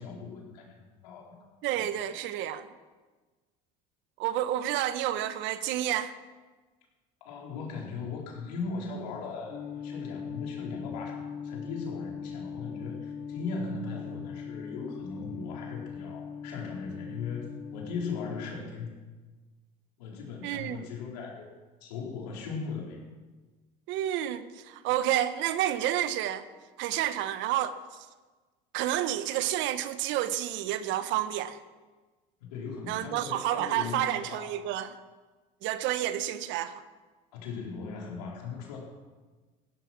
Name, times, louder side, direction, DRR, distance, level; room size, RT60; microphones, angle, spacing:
voice 1, 0.0-1.4 1.8-2.1 7.2-19.0 20.0-21.5 21.8-23.0 32.4-34.6 37.3-38.8, left 4 dB, 90° left, 4.3 m, -38 dB
voice 2, 1.6-2.7 4.2-6.1 20.4-20.8 23.9-26.4 26.8-27.8 28.7-31.6 32.9-34.9 35.6-36.8, right 12 dB, 65° right, 1.2 m, -30 dB
sound 1, 9.5-18.5, left 7 dB, 45° left, 1.3 m, -40 dB
16.5 x 13.5 x 6.1 m
supercardioid pair, 95°, 20 cm